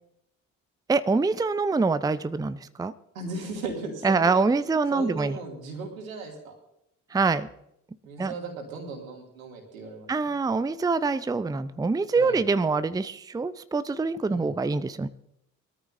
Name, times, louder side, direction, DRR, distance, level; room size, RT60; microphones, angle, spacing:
voice 1, 0.9-2.9 4.0-5.4 7.1-7.5 8.2-8.3 10.1-15.1, right 4 dB, 10° right, 14 dB, 0.6 m, -25 dB
voice 2, 3.1-4.4 4.9-6.6 8.0-10.1 12.2-12.4 14.3-14.5, right 3 dB, 80° right, 2 dB, 2.8 m, -37 dB
23.0 x 13.5 x 2.7 m, 0.78 s
figure-of-eight pair, 45°, 40 cm